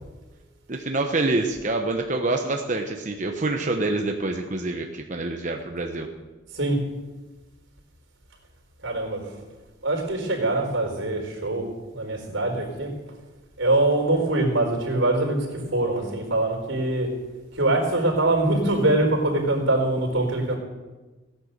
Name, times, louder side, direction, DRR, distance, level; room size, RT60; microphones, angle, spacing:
voice 1, 0.7-6.1, right 2 dB, 40° right, 3 dB, 1.0 m, -26 dB
voice 2, 8.8-9.2 9.8-11.7 11.9-12.9 13.6-17.1 17.5-20.6, right 2 dB, 80° right, 2 dB, 4.3 m, -23 dB
17.0 x 10.5 x 6.7 m, 1.2 s
head